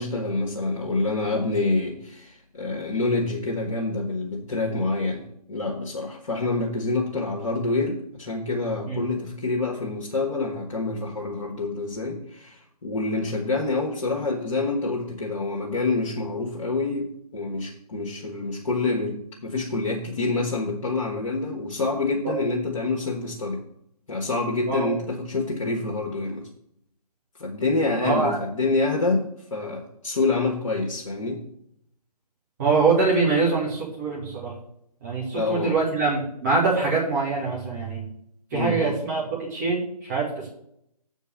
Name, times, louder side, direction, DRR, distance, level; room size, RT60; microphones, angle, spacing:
voice 1, 0.0-23.6 24.1-26.5 27.4-31.4 35.3-35.8 38.5-38.9, left 3 dB, 50° left, -1 dB, 1.6 m, -27 dB
voice 2, 28.0-28.4 32.6-34.5 35.0-38.1 38.5-40.5, right 4 dB, 30° right, -5 dB, 2.3 m, -24 dB
8.2 x 4.6 x 7.2 m, 0.73 s
figure-of-eight pair, 145°, 20 cm